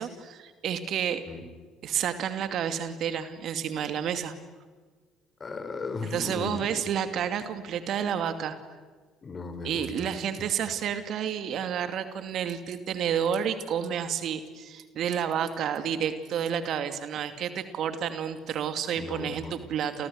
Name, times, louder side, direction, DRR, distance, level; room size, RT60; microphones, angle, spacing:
voice 1, 0.0-1.2 1.8-4.3 6.1-8.6 9.6-20.1, right 8 dB, 55° right, 10 dB, 2.5 m, -30 dB
voice 2, 5.4-6.7 9.2-10.1 19.0-19.5, left 3 dB, 35° left, 9 dB, 4.7 m, -36 dB
30.0 x 29.5 x 6.5 m, 1.5 s
hypercardioid pair, 55°, 0 cm